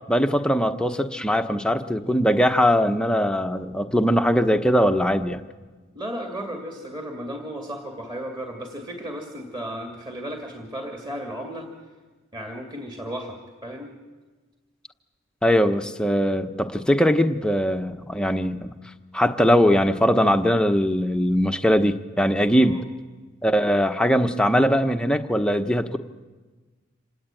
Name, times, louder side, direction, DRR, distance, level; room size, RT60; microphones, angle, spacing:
voice 1, 0.1-5.4 15.4-18.7 19.1-22.8 23.4-26.0, equal, 5° left, 7 dB, 0.9 m, -21 dB
voice 2, 5.9-11.7 12.3-13.9 22.6-22.8, equal, 20° right, 1 dB, 2.5 m, -34 dB
27.0 x 19.0 x 9.1 m, 1.3 s
head